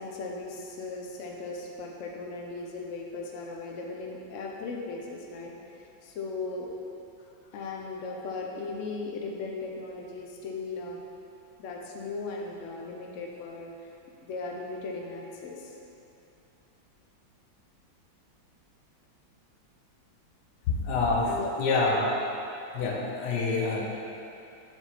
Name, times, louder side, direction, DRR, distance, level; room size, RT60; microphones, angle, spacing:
voice 1, 0.0-6.7 7.5-11.0 11.6-13.7 14.2-15.7 21.2-21.5, left 3 dB, 85° left, 0 dB, 0.6 m, -37 dB
voice 2, 20.7-21.3 21.6-22.1 22.7-23.9, left 3 dB, 65° left, -2 dB, 1.3 m, -26 dB
7.0 x 4.4 x 4.1 m, 2.8 s
omnidirectional pair, 2.2 m